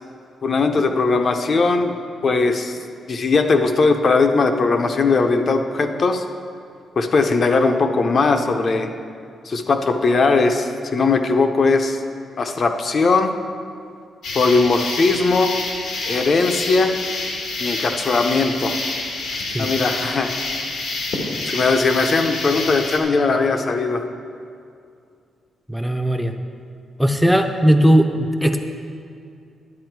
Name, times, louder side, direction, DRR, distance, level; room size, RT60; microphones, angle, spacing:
voice 1, 0.4-1.9 2.2-2.8 3.1-6.2 7.0-8.9 9.4-12.0 12.4-13.3 14.3-15.5 16.1-16.9 17.6-18.8 19.6-20.3 21.5-24.0, left 3 dB, 40° left, 6 dB, 0.7 m, -19 dB
sound 1, 14.2-23.0, left 3 dB, 85° left, 1.5 m, -28 dB
voice 2, 25.7-26.3 27.0-28.6, equal, ahead, 6 dB, 0.6 m, -17 dB
10.5 x 8.7 x 4.6 m, 2.3 s
wide cardioid pair, 140°, 0 cm